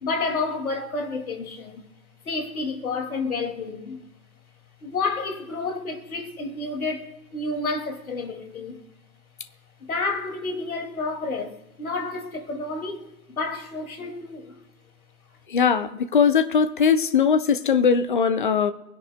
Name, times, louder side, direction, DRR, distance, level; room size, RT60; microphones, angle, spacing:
voice 1, 0.0-1.8 2.3-4.0 4.8-8.8 9.8-14.5, left 3 dB, 60° left, 2.4 m, -30 dB
voice 2, 15.5-18.7, left 6 dB, 30° left, 0.7 m, -20 dB
23.5 x 10.5 x 2.2 m
figure-of-eight pair, 135°, 48 cm